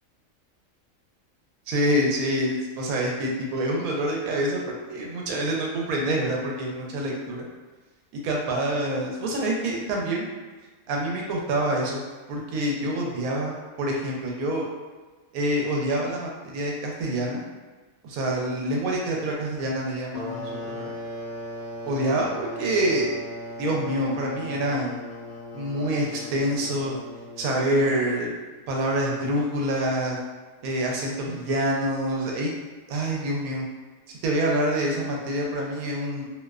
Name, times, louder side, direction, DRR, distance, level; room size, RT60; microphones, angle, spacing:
voice 1, 1.7-7.5 8.1-10.3 10.9-12.0 12.3-14.6 15.3-17.4 18.0-20.9 21.8-23.1 23.6-25.0 25.5-27.0 27.4-28.3 28.7-30.2 30.6-32.5 32.9-33.6 34.2-36.3, right 1 dB, 85° right, -1 dB, 1.0 m, -26 dB
sound 1, 20.1-28.5, left 1 dB, 45° left, 0.5 m, -38 dB
2.6 x 2.1 x 2.3 m, 1.3 s
omnidirectional pair, 1.4 m